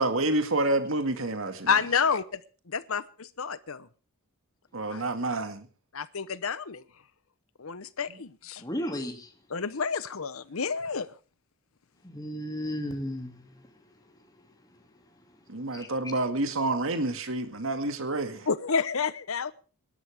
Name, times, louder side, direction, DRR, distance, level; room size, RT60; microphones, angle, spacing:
voice 1, 0.0-1.7 4.7-5.7 15.5-18.5, right 2 dB, 60° right, 2.1 m, -28 dB
voice 2, 1.7-2.4 2.7-3.9 4.9-5.0 5.9-6.8 7.6-8.6 9.5-11.1 18.5-19.5, left 6 dB, 65° left, 0.9 m, -29 dB
voice 3, 8.6-9.3 12.0-13.3 15.7-15.9, equal, 15° left, 2.5 m, -33 dB
22.5 x 12.5 x 3.5 m
head